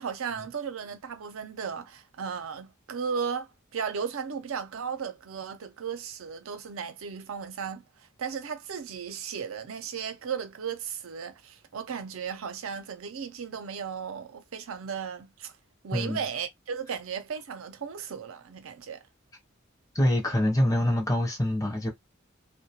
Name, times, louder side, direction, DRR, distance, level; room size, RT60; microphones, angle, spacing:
voice 1, 0.0-15.5 15.8-19.0, right 6 dB, 85° right, 0.5 m, -35 dB
voice 2, 19.9-21.9, left 1 dB, 15° left, 0.6 m, -25 dB
2.3 x 2.1 x 2.8 m
head